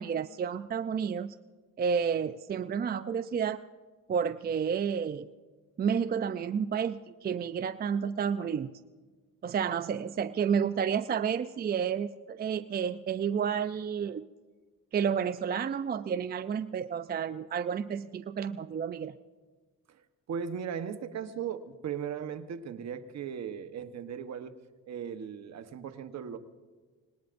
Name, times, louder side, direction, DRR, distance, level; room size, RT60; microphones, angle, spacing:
voice 1, 0.0-1.3 1.8-3.6 4.1-5.3 5.8-8.7 9.4-14.2 14.9-19.1, right 7 dB, 30° right, 12 dB, 0.4 m, -30 dB
voice 2, 20.3-24.5 24.9-26.4, right 7 dB, 60° right, 8 dB, 1.1 m, -37 dB
26.0 x 19.5 x 2.6 m, 1.4 s
cardioid pair, 90°, 30 cm